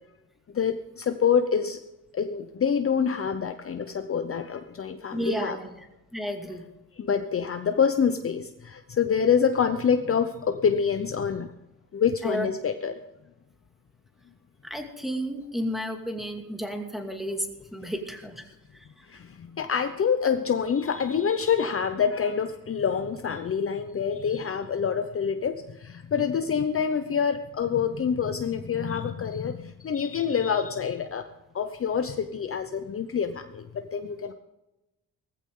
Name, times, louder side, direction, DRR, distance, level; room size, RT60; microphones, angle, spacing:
voice 1, 0.5-1.8 2.1-5.6 7.0-11.5 11.9-13.0 19.1-31.3 31.5-34.3, left 7 dB, 35° left, 8 dB, 0.8 m, -26 dB
voice 2, 5.1-5.8 6.1-6.6 12.2-12.5 14.6-17.5 17.7-18.5 18.7-18.9, equal, ahead, 3 dB, 2.4 m, -32 dB
18.5 x 15.0 x 3.8 m, 0.99 s
cardioid pair, 125°, 37 cm